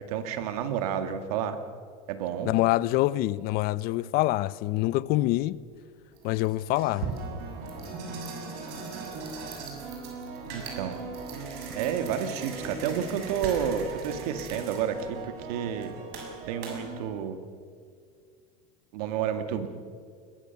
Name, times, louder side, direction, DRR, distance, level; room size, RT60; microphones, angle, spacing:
voice 1, 0.1-1.6 2.1-2.5 10.5-11.0 11.8-15.9 16.5-17.4 18.9-19.7, right 8 dB, 75° right, 1.9 m, -30 dB
voice 2, 2.4-5.6 6.2-7.1, left 17 dB, 50° left, 0.7 m, -25 dB
sound 1, 5.3-5.4 6.1-17.0, right 4 dB, 55° right, 6.7 m, -38 dB
22.0 x 21.0 x 7.0 m
supercardioid pair, 125°, 19 cm